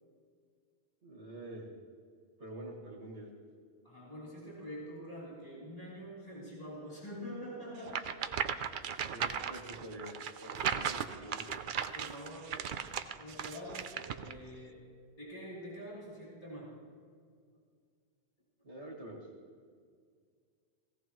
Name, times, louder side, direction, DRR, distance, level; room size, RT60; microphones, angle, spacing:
voice 1, 1.0-1.7 2.4-3.3 9.1-11.5 18.6-19.3, right 1 dB, 85° right, -2 dB, 2.3 m, -46 dB
voice 2, 3.8-8.2 11.9-12.7 13.2-16.8, equal, 35° left, -7 dB, 3.8 m, -46 dB
sound 1, 7.9-14.3, right 7 dB, 55° right, 0.7 m, -37 dB
17.5 x 16.5 x 3.1 m, 2.1 s
omnidirectional pair, 1.1 m